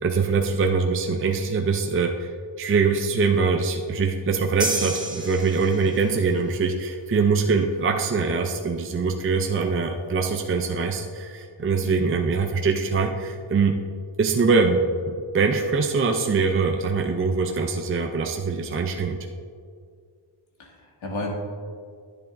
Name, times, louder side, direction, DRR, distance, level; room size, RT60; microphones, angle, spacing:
voice 1, 0.0-2.3 2.6-13.8 14.2-19.2, right 4 dB, 30° right, 3 dB, 0.5 m, -23 dB
sound 1, 4.6-6.2, right 2 dB, 10° right, 1.3 m, -30 dB
voice 2, 20.6-21.3, left 1 dB, 80° left, -2 dB, 2.1 m, -32 dB
10.5 x 10.5 x 2.6 m, 2.1 s
wide cardioid pair, 150°, 47 cm